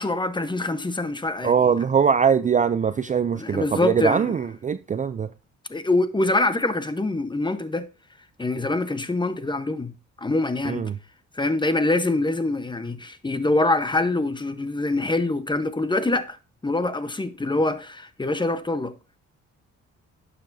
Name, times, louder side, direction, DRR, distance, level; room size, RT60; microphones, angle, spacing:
voice 1, 0.0-1.6 3.3-4.3 5.7-7.9 8.4-9.9 10.2-10.8 11.3-16.4 16.6-18.9, left 2 dB, 15° left, 1.0 m, -24 dB
voice 2, 1.4-5.3 10.6-11.0, right 7 dB, 25° right, 0.4 m, -22 dB
11.5 x 6.9 x 2.7 m
cardioid pair, 90°, 30 cm